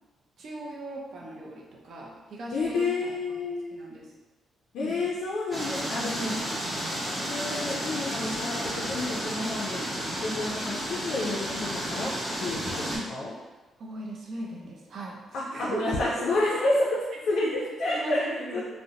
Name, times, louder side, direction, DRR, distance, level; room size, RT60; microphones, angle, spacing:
voice 1, 0.4-3.1 3.7-4.1 4.8-5.1 6.2-6.5 12.9-13.1 13.8-16.7 17.4-17.5 17.8-18.6, right 2 dB, 50° right, -2 dB, 0.5 m, -38 dB
voice 2, 2.5-3.8 4.7-6.3 7.3-9.8 10.2-12.1 12.4-13.3 15.3-16.9 17.3-18.6, left 2 dB, 75° left, -5 dB, 0.4 m, -30 dB
sound 1, 5.5-13.0, equal, 10° right, 0.7 m, -32 dB
2.5 x 2.0 x 2.7 m, 1.2 s
cardioid pair, 150°, 0 cm